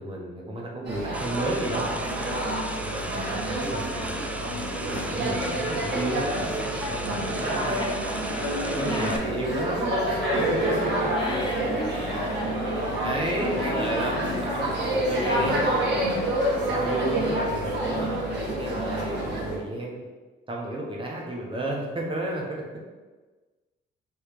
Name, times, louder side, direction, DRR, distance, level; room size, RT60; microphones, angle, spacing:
voice 1, 0.0-1.8 2.8-3.0 3.3-4.2 4.9-6.4 6.9-7.8 8.7-10.9 11.9-12.0 13.0-20.0 20.5-22.6, right 1 dB, 25° right, -2 dB, 1.0 m, -32 dB
sound 1, 0.8-19.6, right 1 dB, 60° right, 1.5 m, -28 dB
sound 2, 1.1-9.2, right 1 dB, 5° right, 0.4 m, -37 dB
voice 2, 3.1-4.3 7.3-9.4 10.8-10.9 11.1-12.9 13.3-14.4 15.1-16.4, left 1 dB, 25° left, -1 dB, 0.7 m, -38 dB
3.5 x 3.1 x 4.5 m, 1.3 s
cardioid pair, 90°, 20 cm